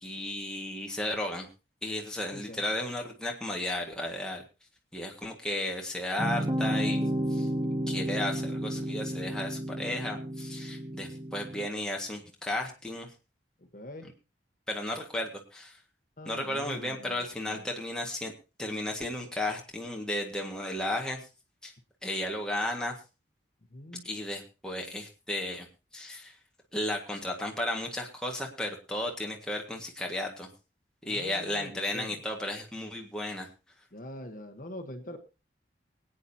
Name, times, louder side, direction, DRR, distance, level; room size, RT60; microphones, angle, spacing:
voice 1, 0.0-1.5 1.8-4.4 4.9-7.0 7.3-7.5 7.9-13.1 14.7-15.7 16.2-18.3 18.6-21.3 21.6-21.7 22.0-23.0 24.0-25.7 25.9-26.3 26.7-30.5 31.1-33.5, left 1 dB, 5° left, 0 dB, 1.7 m, -34 dB
voice 2, 2.3-2.6 13.6-14.1 16.2-17.6 23.7-24.0 31.0-32.2 33.9-35.2, left 1 dB, 50° left, 5 dB, 1.2 m, -44 dB
sound 1, 6.2-11.7, equal, 15° right, 0.7 m, -32 dB
24.0 x 8.9 x 2.8 m, 0.31 s
head